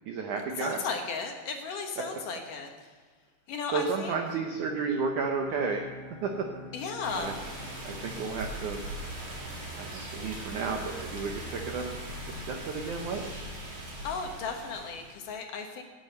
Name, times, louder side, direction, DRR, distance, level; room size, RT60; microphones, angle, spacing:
voice 1, 0.1-0.8 2.0-2.1 3.7-5.8 6.2-6.5 7.1-7.3 7.8-8.8 9.8-13.3, right 5 dB, 75° right, 3 dB, 1.8 m, -32 dB
voice 2, 0.6-2.7 3.5-4.2 6.7-7.5 14.0-15.8, left 5 dB, 65° left, 3 dB, 2.4 m, -35 dB
Bowed string instrument, 4.4-9.4, left 3 dB, 40° left, 2.7 m, -49 dB
sound 1, 7.0-15.1, right 1 dB, 40° right, 3.7 m, -40 dB
17.5 x 9.4 x 6.9 m, 1.5 s
omnidirectional pair, 5.0 m